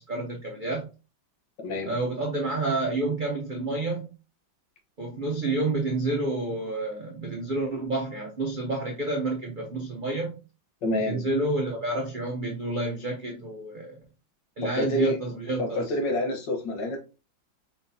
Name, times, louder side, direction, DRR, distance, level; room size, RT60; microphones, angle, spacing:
voice 1, 0.1-0.9 1.9-4.1 5.0-10.4 11.0-14.0 14.6-15.9, right 2 dB, 75° right, -1 dB, 0.4 m, -29 dB
voice 2, 1.6-1.9 10.8-11.3 14.7-15.2 15.6-17.0, left 1 dB, 65° left, 3 dB, 1.8 m, -28 dB
5.0 x 3.9 x 2.7 m, 0.31 s
omnidirectional pair, 2.2 m